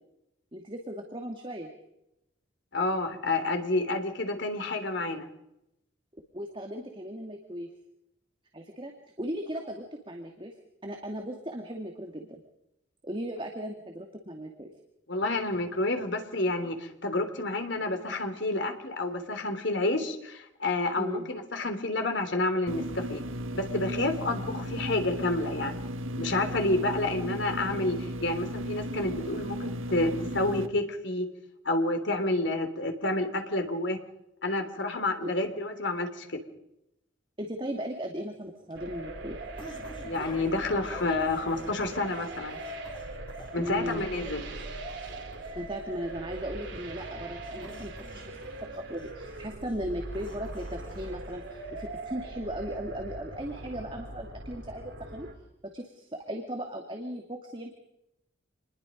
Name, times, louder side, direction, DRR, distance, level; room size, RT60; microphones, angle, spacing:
voice 1, 0.5-1.7 6.3-7.7 8.5-8.9 9.2-10.5 10.8-12.4 13.0-14.7 21.0-21.3 35.2-35.3 37.4-39.4 43.6-44.1 45.5-55.3 55.6-57.7, equal, 25° right, 2 dB, 2.3 m, -37 dB
voice 2, 2.7-5.3 15.1-23.2 23.5-25.8 26.2-31.3 31.6-34.0 34.4-36.4 40.0-42.6 43.5-44.4, left 2 dB, 65° left, 6 dB, 3.4 m, -29 dB
sound 1, 22.7-30.7, equal, 90° right, 1.7 m, -35 dB
sound 2, 38.2-51.8, left 1 dB, 25° left, 4.1 m, -51 dB
sound 3, 38.7-55.3, right 2 dB, 65° right, 4.2 m, -41 dB
27.5 x 21.0 x 5.3 m, 0.85 s
head